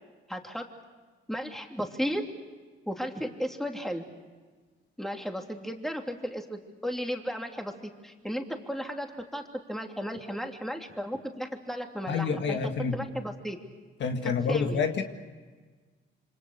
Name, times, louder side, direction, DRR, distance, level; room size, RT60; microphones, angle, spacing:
voice 1, 0.3-0.7 1.3-2.2 2.9-4.0 5.0-9.1 9.3-9.4 9.7-12.6 12.9-13.6 14.2-14.8, equal, ahead, 3 dB, 3.0 m, -34 dB
voice 2, 12.1-13.0 14.0-15.0, left 5 dB, 65° left, 5 dB, 2.0 m, -28 dB
27.0 x 25.5 x 6.7 m, 1.4 s
cardioid pair, 90°, 20 cm